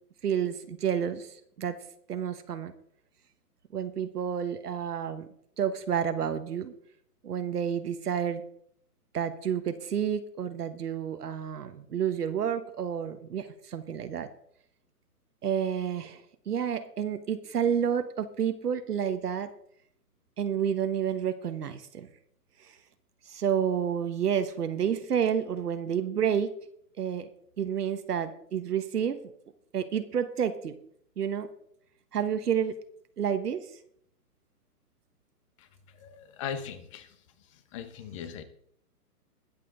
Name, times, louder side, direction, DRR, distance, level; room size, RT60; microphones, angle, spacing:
voice 1, 0.2-1.8 2.1-2.7 3.7-5.3 5.6-6.7 7.2-8.4 9.1-14.3 15.4-19.5 20.4-22.1 23.3-26.6 27.0-27.3 27.6-29.2 29.7-30.7 31.2-31.5 32.1-32.7 33.2-33.7, right 8 dB, 75° right, 9 dB, 1.3 m, -30 dB
voice 2, 35.9-38.4, left 8 dB, 20° left, 11 dB, 0.9 m, -40 dB
21.0 x 7.7 x 3.8 m, 0.67 s
hypercardioid pair, 150°, 47 cm